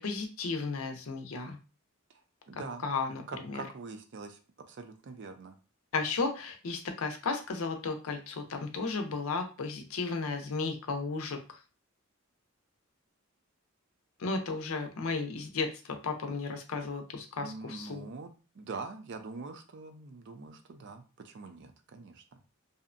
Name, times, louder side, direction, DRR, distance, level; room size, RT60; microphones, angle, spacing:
voice 1, 0.0-1.6 2.8-3.7 5.9-11.4 14.2-18.1, left 4 dB, 80° left, 5 dB, 0.5 m, -34 dB
voice 2, 2.5-2.8 3.3-4.4 4.7-5.6 17.4-22.4, right 4 dB, 60° right, 7 dB, 0.4 m, -44 dB
2.7 x 2.1 x 2.5 m, 0.33 s
head